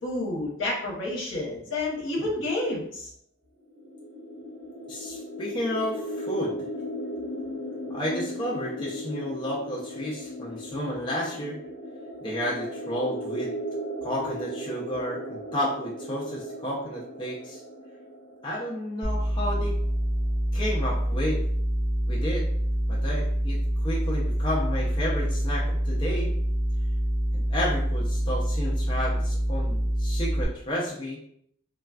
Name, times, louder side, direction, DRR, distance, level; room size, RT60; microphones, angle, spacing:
voice 1, 0.0-3.1, left 2 dB, 65° left, -3 dB, 0.9 m, -29 dB
sound 1, 3.7-19.4, equal, 45° right, 1.4 m, -37 dB
voice 2, 4.9-6.6 7.9-11.6 12.2-13.5 14.0-17.6 18.4-19.7 20.5-21.4 22.1-22.5 22.9-23.6 23.8-26.3 27.3-31.2, equal, 25° left, -5 dB, 0.4 m, -31 dB
sound 2, 19.0-30.5, equal, ahead, 1.1 m, -26 dB
3.2 x 2.2 x 2.3 m, 0.68 s
head